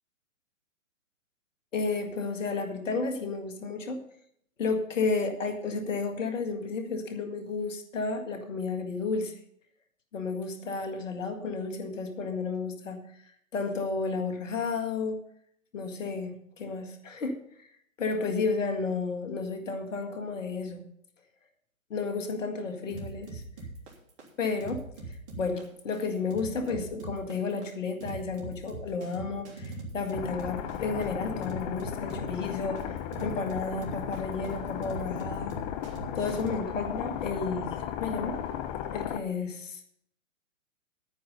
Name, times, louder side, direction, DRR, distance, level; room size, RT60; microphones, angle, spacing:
voice 1, 1.7-4.0 4.6-9.3 10.1-13.0 13.5-15.2 15.7-17.7 18.0-20.8 21.9-23.4 24.4-24.8 25.1-35.6 36.2-38.4 38.9-39.8, left 4 dB, 65° left, 6 dB, 2.0 m, -32 dB
sound 1, 22.9-36.6, right 3 dB, 40° right, 3.2 m, -42 dB
sound 2, 30.1-39.2, left 10 dB, 30° left, 1.1 m, -35 dB
11.0 x 9.5 x 5.3 m, 0.68 s
figure-of-eight pair, 130°, 41 cm